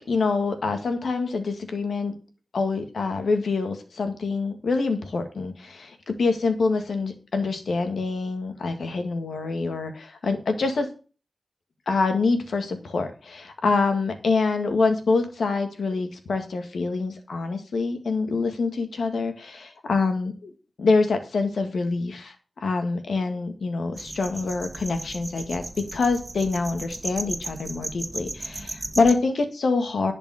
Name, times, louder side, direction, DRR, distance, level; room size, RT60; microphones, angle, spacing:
voice 1, 0.0-2.1 2.5-10.9 11.9-20.5 20.8-22.4 22.6-25.6 25.9-30.1, left 4 dB, 90° left, 7 dB, 1.8 m, -25 dB
sound 1, 23.9-29.1, right 2 dB, 35° right, 1.4 m, -36 dB
11.0 x 5.2 x 6.4 m, 0.36 s
cardioid pair, 55°, 0 cm